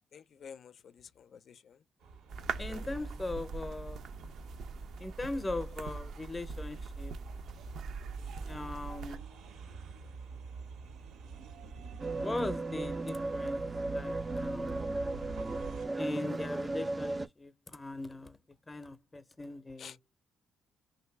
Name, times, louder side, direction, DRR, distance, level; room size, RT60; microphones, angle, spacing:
voice 1, 0.1-1.8 2.7-3.0 9.1-9.2 19.8-20.0, left 7 dB, 55° left, 0.4 m, -51 dB
sound 1, 2.0-15.9, right 5 dB, 85° right, 1.5 m, -48 dB
sound 2, 2.3-9.2, right 4 dB, 70° right, 0.7 m, -41 dB
voice 2, 2.6-4.0 5.0-7.1 8.5-9.3 12.2-14.8 16.0-18.4 18.7-19.9, left 2 dB, 20° left, 0.6 m, -39 dB
sound 3, 12.0-17.3, right 2 dB, 20° right, 0.4 m, -35 dB
3.1 x 2.7 x 3.3 m
cardioid pair, 90°, 0 cm